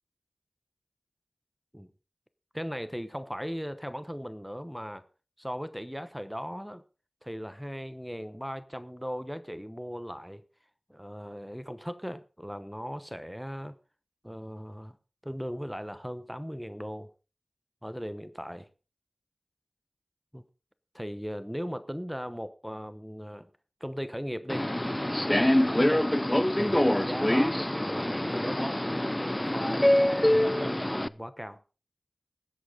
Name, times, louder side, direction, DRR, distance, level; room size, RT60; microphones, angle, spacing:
voice 1, 2.5-5.1 5.4-6.8 7.2-10.4 10.9-13.8 14.2-15.0 15.2-17.1 17.8-18.7 20.3-20.4 20.9-23.5 23.8-24.7 25.8-26.1 26.5-28.8 29.4-31.6, equal, ahead, 13 dB, 0.9 m, -38 dB
Subway metro underground, 24.5-31.1, left 1 dB, 20° left, 0.5 m, -25 dB
19.5 x 8.0 x 3.9 m, 0.34 s
wide cardioid pair, 45°, 0 cm